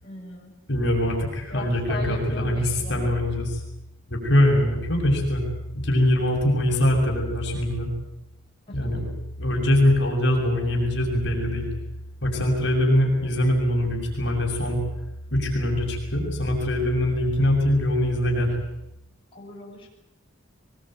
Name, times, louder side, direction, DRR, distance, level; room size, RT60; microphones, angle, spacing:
voice 1, 0.0-0.5 1.5-3.1 8.7-9.1 19.3-19.9, left 2 dB, 25° left, -4 dB, 7.5 m, -38 dB
voice 2, 0.7-3.6 4.1-5.4 5.8-7.9 8.7-9.1 9.4-11.7 12.2-14.8 15.3-18.6, left 1 dB, 55° left, 0 dB, 7.1 m, -22 dB
23.0 x 22.5 x 9.2 m, 0.87 s
head